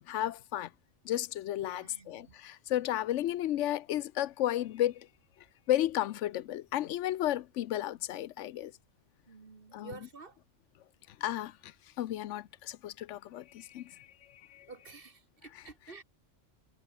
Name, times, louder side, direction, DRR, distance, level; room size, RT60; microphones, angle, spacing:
voice 1, 0.1-0.7 1.0-5.1 5.7-8.7 9.7-9.9 11.2-11.7 12.0-14.1 14.5-14.7, left 13 dB, 80° left, 0.9 m, -33 dB
voice 2, 1.6-2.4 9.3-10.4 14.7-16.0, right 4 dB, 50° right, 1.8 m, -50 dB
omnidirectional pair, 1.2 m